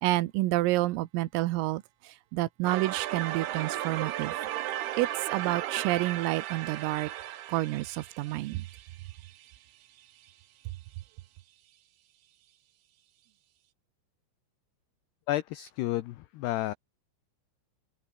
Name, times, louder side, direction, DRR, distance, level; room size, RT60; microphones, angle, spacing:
voice 1, 0.0-4.3 5.0-7.1 7.5-8.7, right 18 dB, 90° right, 3.7 m, -29 dB
sound 1, 2.6-9.5, right 13 dB, 65° right, 2.9 m, -35 dB
voice 2, 15.3-16.7, left 15 dB, 85° left, 2.3 m, -31 dB
omnidirectional pair, 5.9 m